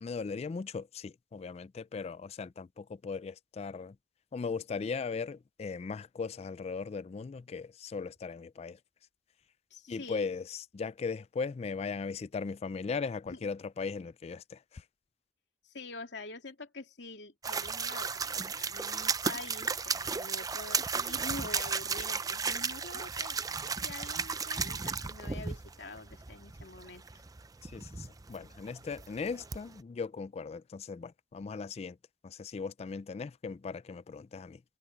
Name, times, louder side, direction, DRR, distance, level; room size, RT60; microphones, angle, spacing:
voice 1, 0.0-4.0 4.3-8.8 9.9-14.8 27.6-32.0 32.2-34.6, left 5 dB, 35° left, 0.3 m, -38 dB
voice 2, 9.7-10.3 13.3-13.5 15.6-23.4 23.7-27.1, left 2 dB, 85° left, 2.8 m, -46 dB
sound 1, 17.4-29.8, right 5 dB, 20° right, 0.5 m, -35 dB
head